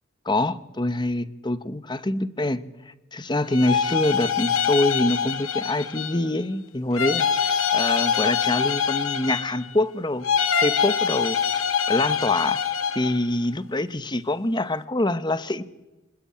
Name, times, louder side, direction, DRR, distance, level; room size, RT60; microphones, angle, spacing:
voice 1, 0.2-10.2 10.6-12.6 12.9-15.6, left 1 dB, 20° left, 13 dB, 1.0 m, -25 dB
sound 1, 3.5-6.3 6.9-9.7 10.2-13.2, left 7 dB, 85° left, 2.0 m, -24 dB
26.0 x 20.0 x 8.7 m, 1.1 s
head